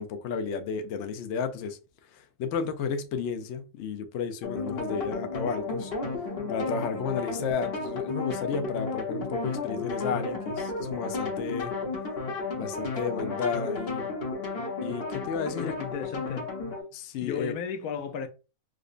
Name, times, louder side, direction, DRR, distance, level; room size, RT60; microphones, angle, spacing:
voice 1, 0.0-1.8 2.1-5.9 6.2-11.7 12.6-14.1 14.8-15.7 16.9-17.5, left 6 dB, 65° left, 0.7 m, -32 dB
sound 1, 4.4-16.8, left 3 dB, 45° left, 1.0 m, -33 dB
voice 2, 15.5-16.5 17.2-18.3, left 7 dB, 85° left, 1.1 m, -34 dB
4.9 x 2.1 x 2.4 m
omnidirectional pair, 1.5 m